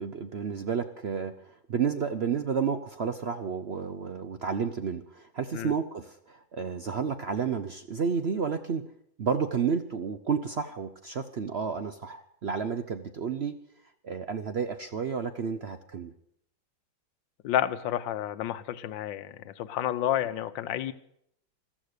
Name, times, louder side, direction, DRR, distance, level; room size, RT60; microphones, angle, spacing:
voice 1, 0.0-8.8 9.2-13.6 14.0-16.1, right 6 dB, 60° right, 0.6 m, -31 dB
voice 2, 17.4-20.9, left 11 dB, 80° left, 1.5 m, -30 dB
14.5 x 13.5 x 6.7 m
omnidirectional pair, 2.0 m